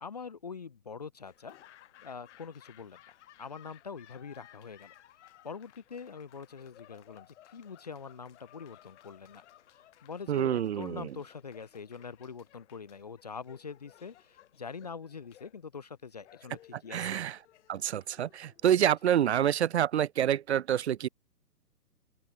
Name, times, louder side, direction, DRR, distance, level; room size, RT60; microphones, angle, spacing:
voice 1, 0.0-1.6 2.0-3.0 3.4-4.9 5.4-9.4 10.0-17.2, left 5 dB, 30° left, 0.4 m, -44 dB
Laughter / Applause, 1.2-19.3, left 13 dB, 45° left, 3.5 m, -59 dB
voice 2, 10.3-11.1 16.9-17.4 17.7-21.1, right 10 dB, 45° right, 0.6 m, -27 dB
open air
hypercardioid pair, 140°, 48 cm